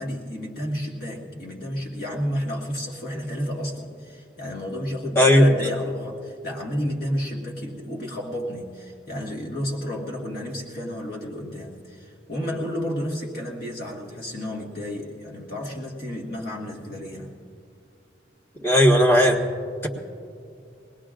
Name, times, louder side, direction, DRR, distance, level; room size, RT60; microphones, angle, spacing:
voice 1, 0.0-17.4, equal, 55° left, -2 dB, 1.7 m, -31 dB
voice 2, 18.6-19.4, equal, 15° left, -1 dB, 1.4 m, -15 dB
23.0 x 19.5 x 2.5 m, 2.5 s
head